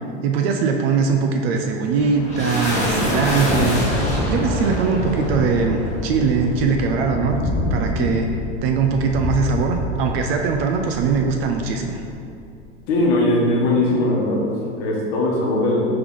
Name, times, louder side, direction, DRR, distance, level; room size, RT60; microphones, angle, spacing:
voice 1, 0.2-4.0 4.3-7.4 7.7-8.3 8.6-12.0, right 5 dB, 60° right, 3 dB, 0.5 m, -21 dB
sound 1, 1.5-12.2, left 1 dB, 20° left, 1.1 m, -25 dB
voice 2, 12.9-15.9, left 2 dB, 55° left, -3 dB, 1.1 m, -20 dB
3.5 x 3.3 x 3.5 m, 2.5 s
hypercardioid pair, 105°, 34 cm